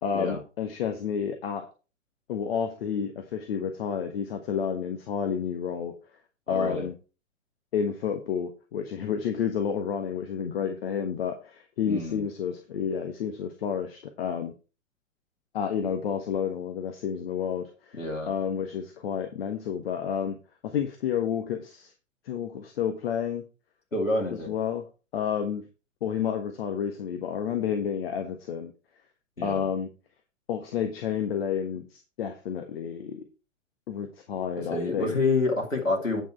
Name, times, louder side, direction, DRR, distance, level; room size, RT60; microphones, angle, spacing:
voice 1, 0.0-1.7 2.3-5.9 6.5-6.9 7.7-14.5 15.5-18.0 18.3-20.4 20.6-21.9 22.2-23.4 24.3-24.9 25.1-25.6 26.0-28.7 29.4-29.9 30.5-33.2 33.9-35.2, left 7 dB, 50° left, 5 dB, 1.4 m, -30 dB
voice 2, 6.5-6.9 11.9-12.2 17.9-18.3 23.9-24.5 29.4-29.7 34.6-36.2, left 2 dB, 85° left, 1 dB, 2.4 m, -28 dB
9.1 x 6.2 x 4.5 m, 0.33 s
figure-of-eight pair, 110°, 38 cm